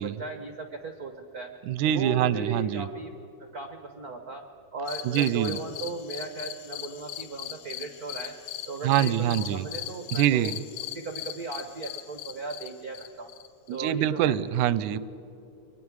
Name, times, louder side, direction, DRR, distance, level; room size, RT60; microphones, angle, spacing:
voice 1, 0.0-1.5 1.8-3.1 3.5-4.4 4.7-8.4 8.7-10.5 10.9-13.3 13.7-14.4, right 4 dB, 65° right, 5 dB, 0.9 m, -37 dB
voice 2, 1.7-2.9 5.1-5.6 8.8-9.7 10.1-10.6 13.7-15.0, right 11 dB, 90° right, 16 dB, 2.1 m, -25 dB
sound 1, 4.9-13.8, left 13 dB, 75° left, 2.0 m, -39 dB
30.0 x 23.5 x 4.8 m, 2.9 s
omnidirectional pair, 3.4 m